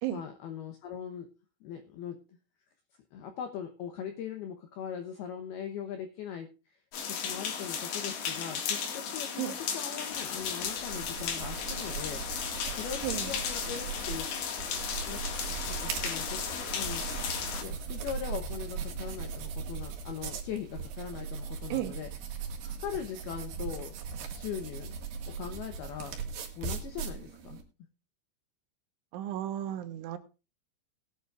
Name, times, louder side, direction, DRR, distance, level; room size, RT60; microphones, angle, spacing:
voice 1, 0.1-1.3 1.6-2.2 3.1-12.2 12.7-14.3 15.1-15.2 15.7-17.1 17.6-22.1 22.6-23.9 24.3-25.0 25.3-26.2 26.6-27.6, left 8 dB, 80° left, 6 dB, 2.2 m, -40 dB
sound 1, 6.9-17.6, left 7 dB, 60° left, 3.1 m, -35 dB
sound 2, 10.1-27.6, right 6 dB, 60° right, 3.4 m, -39 dB
voice 2, 13.0-13.3 21.7-21.9 29.1-30.2, right 13 dB, 75° right, 9 dB, 3.3 m, -34 dB
20.0 x 9.5 x 2.4 m, 0.32 s
omnidirectional pair, 5.8 m